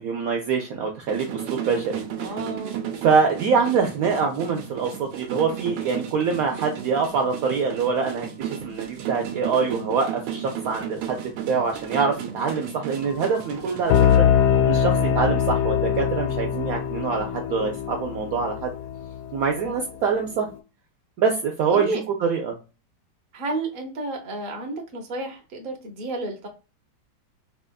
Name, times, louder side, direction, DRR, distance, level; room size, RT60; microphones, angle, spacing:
voice 1, 0.0-2.4 3.0-11.2 11.5-14.3 14.6-18.7 19.3-20.5 21.2-21.9 22.2-22.6, right 5 dB, 70° right, 2 dB, 0.9 m, -24 dB
sound 1, 1.1-14.2, right 9 dB, 85° right, 1.3 m, -34 dB
voice 2, 2.1-2.8 3.6-3.7 19.6-19.8 21.6-22.0 23.3-26.5, right 2 dB, 45° right, 2 dB, 0.7 m, -31 dB
sound 2, 13.9-19.5, left 8 dB, 70° left, 0.8 m, -22 dB
4.2 x 2.4 x 2.2 m, 0.32 s
omnidirectional pair, 1.9 m